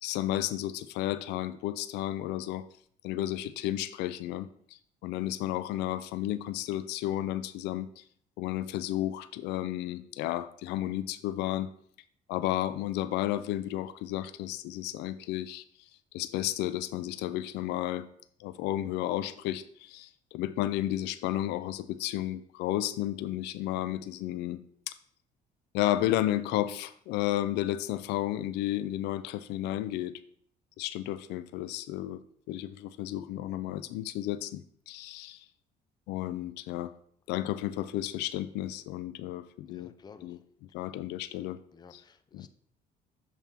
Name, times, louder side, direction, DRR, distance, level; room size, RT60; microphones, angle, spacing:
voice 1, 0.0-2.7 3.0-8.0 8.4-11.7 12.3-15.6 16.1-18.1 18.4-25.0 25.7-30.2 30.8-32.2 32.5-35.5 36.1-36.9 37.3-39.9 40.2-40.4 40.7-41.6 42.3-42.5, left 14 dB, 85° left, 13 dB, 0.4 m, -32 dB
voice 2, 39.7-40.4 40.7-40.9 41.7-42.5, left 5 dB, 25° left, 10 dB, 0.5 m, -54 dB
7.3 x 4.3 x 3.5 m, 0.63 s
cardioid pair, 110°, 17 cm